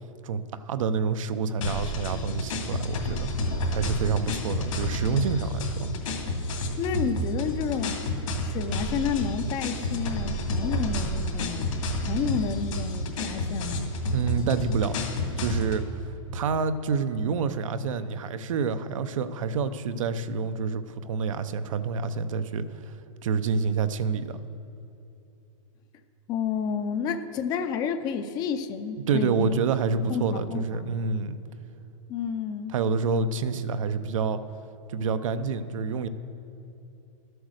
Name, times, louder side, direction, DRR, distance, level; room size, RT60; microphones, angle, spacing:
voice 1, 0.2-5.9 14.1-15.0 15.4-15.8 16.3-22.9 23.2-24.4 29.1-31.4 32.7-34.4 34.9-36.1, right 5 dB, 75° right, 11 dB, 0.7 m, -28 dB
sound 1, 1.6-15.8, left 1 dB, 80° left, 2.4 m, -30 dB
voice 2, 6.8-8.0 8.4-11.7 12.0-13.9 26.3-29.5 30.1-31.0 32.1-32.8, left 7 dB, 25° left, 9 dB, 0.5 m, -30 dB
12.5 x 7.9 x 6.5 m, 2.8 s
supercardioid pair, 160°, 17 cm